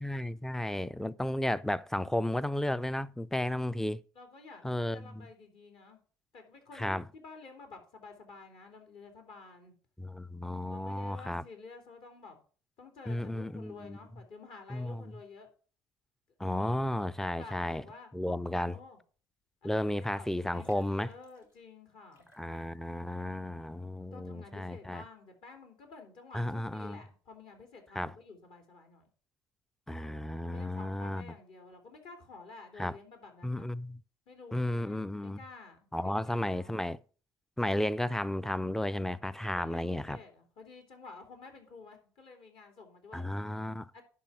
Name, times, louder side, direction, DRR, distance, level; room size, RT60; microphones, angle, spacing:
voice 1, 0.0-4.0 4.6-5.3 6.8-7.0 10.0-11.4 13.1-14.0 14.7-15.0 16.4-17.8 18.1-18.8 19.6-21.1 22.4-25.0 26.3-27.0 28.0-28.1 29.9-31.3 32.8-32.9 33.4-34.0 34.5-35.4 35.9-37.0 37.6-40.2 43.1-44.0, left 1 dB, 5° left, 0.5 m, -33 dB
voice 2, 4.1-6.0 6.3-9.7 10.7-12.4 12.8-15.5 17.2-18.1 18.6-19.0 19.6-22.3 24.1-29.1 30.4-33.7 34.3-36.8 39.5-43.3 43.9-44.0, left 4 dB, 55° left, 3.2 m, -51 dB
sound 1, 19.1-19.4 19.6-19.7 20.4-21.7 22.1-23.1 23.5-23.6, left 1 dB, 90° left, 2.3 m, -64 dB
11.0 x 4.3 x 6.1 m
hypercardioid pair, 65°, 11 cm